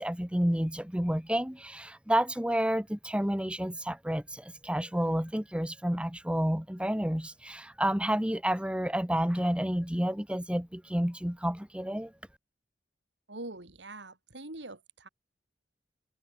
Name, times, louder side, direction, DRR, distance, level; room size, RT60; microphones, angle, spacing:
voice 1, 0.0-12.1, equal, 5° right, 1.3 m, -30 dB
voice 2, 13.3-15.1, right 2 dB, 85° right, 3.3 m, -43 dB
head